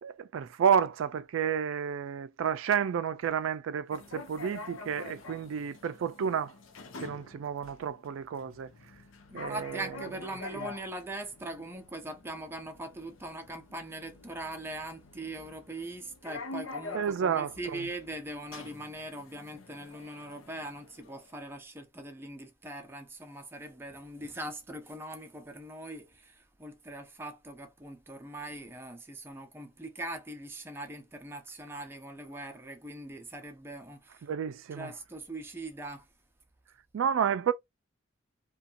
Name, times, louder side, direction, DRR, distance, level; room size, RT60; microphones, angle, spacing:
voice 1, 0.0-6.5 7.0-8.7 9.3-9.9 10.6-10.7 16.9-17.5 34.2-34.9 36.9-37.5, right 7 dB, 75° right, 0.3 m, -30 dB
sound 1, 3.9-21.4, left 3 dB, 80° left, 0.6 m, -47 dB
voice 2, 9.3-34.3 34.7-36.1, right 1 dB, 10° right, 0.5 m, -41 dB
2.6 x 2.2 x 2.5 m
head